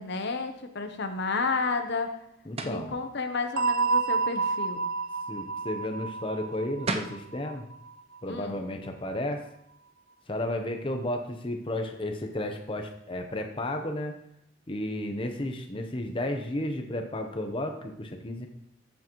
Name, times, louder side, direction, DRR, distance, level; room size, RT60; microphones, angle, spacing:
voice 1, 0.0-2.2 2.6-4.8 8.3-8.7, left 4 dB, 60° left, 6 dB, 0.9 m, -31 dB
voice 2, 2.5-3.0 5.3-7.7 8.2-9.4 10.3-14.2 14.7-18.5, left 1 dB, 25° left, 4 dB, 0.8 m, -33 dB
sound 1, 2.6-2.9 6.5-6.6 6.9-7.2, right 3 dB, 30° right, 0.6 m, -32 dB
sound 2, 3.6-8.2, right 4 dB, 80° right, 0.6 m, -29 dB
14.0 x 7.5 x 3.1 m, 0.75 s
head